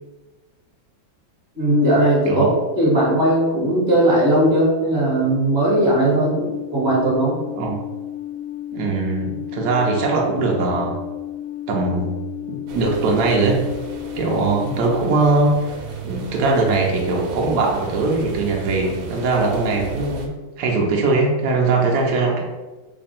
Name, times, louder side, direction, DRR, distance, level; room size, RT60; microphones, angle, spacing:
voice 1, 1.6-2.5 2.7-7.4, right 1 dB, 35° right, -8 dB, 1.3 m, -18 dB
Alarm, 5.9-14.9, left 12 dB, 65° left, 1.1 m, -32 dB
voice 2, 8.7-11.0 11.7-12.1 12.5-13.6 14.2-15.7 16.0-22.5, right 3 dB, 70° right, -1 dB, 1.1 m, -20 dB
sound 1, 12.7-20.3, right 2 dB, 90° right, 1.4 m, -35 dB
3.5 x 2.3 x 4.0 m, 1.2 s
omnidirectional pair, 2.2 m